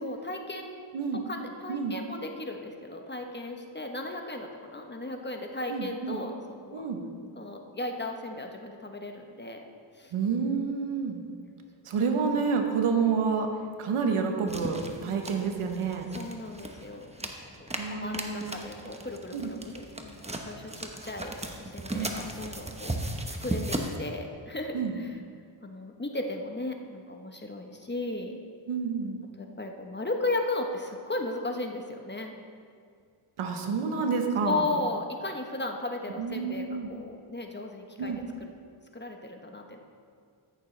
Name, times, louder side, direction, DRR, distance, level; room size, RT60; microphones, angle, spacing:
voice 1, 0.0-0.9 1.3-6.9 7.3-9.6 9.9-10.1 15.0-15.3 16.1-21.3 21.6-23.0 23.4-25.2 25.6-28.4 29.4-32.3 34.4-38.1 38.4-38.5 38.9-39.8, left 2 dB, 20° left, 3 dB, 1.1 m, -36 dB
voice 2, 5.7-6.2 6.7-7.0 10.1-11.2 11.8-13.5 13.8-16.1 17.8-18.7 19.3-19.5 21.9-22.1 24.7-25.0 28.7-29.2 33.4-34.6 36.2-36.9 38.0-38.2, right 5 dB, 90° right, 3 dB, 1.1 m, -29 dB
sound 1, 14.5-24.0, right 1 dB, 15° right, 1.0 m, -37 dB
14.0 x 6.7 x 3.3 m, 2.2 s
cardioid pair, 50°, 49 cm